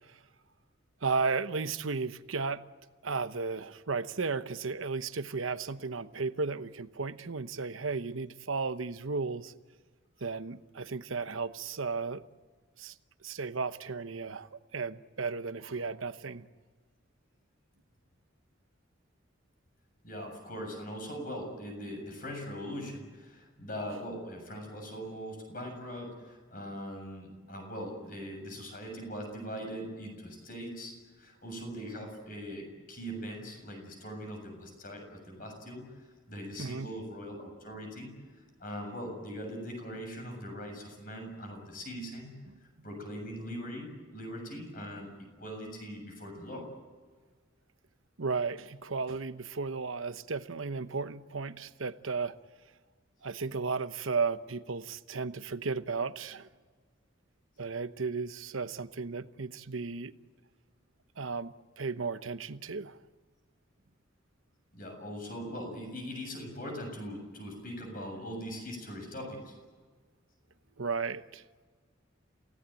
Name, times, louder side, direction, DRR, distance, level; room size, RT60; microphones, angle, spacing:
voice 1, 1.0-2.6 3.0-9.5 10.2-12.2 12.8-12.9 13.2-16.5 36.6-36.9 42.5-42.6 48.2-52.4 53.2-56.5 57.6-60.1 61.2-63.0 70.8-71.4, right 4 dB, 90° right, 12 dB, 1.0 m, -34 dB
voice 2, 20.0-35.9 36.3-38.2 38.6-42.4 42.8-45.1 45.4-46.7 64.7-69.6, equal, 45° left, 3 dB, 7.2 m, -41 dB
28.5 x 17.5 x 9.1 m, 1.5 s
head